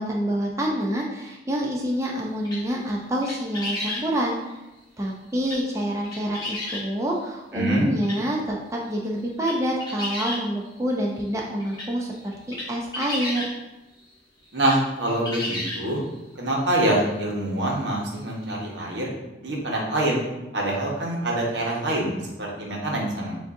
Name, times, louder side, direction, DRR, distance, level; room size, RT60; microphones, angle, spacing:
voice 1, 0.0-4.4 5.0-13.5, equal, 15° right, -2 dB, 0.4 m, -27 dB
sound 1, 2.4-2.9 3.2-4.1 5.4-5.8 6.0-6.9 7.7-7.8 8.0-8.2 8.8-8.9 9.2-10.8 11.2-11.3 11.6-13.5 14.5-14.8 15.1-16.0 16.7-16.8 17.1-17.2 18.5-18.6, left 1 dB, 25° left, 0.9 m, -32 dB
voice 2, 7.5-7.9 14.5-16.0 16.4-19.1 19.4-20.2 20.5-22.1 22.4-23.3, right 1 dB, 80° right, -2 dB, 1.1 m, -25 dB
7.1 x 2.6 x 2.6 m, 0.99 s
head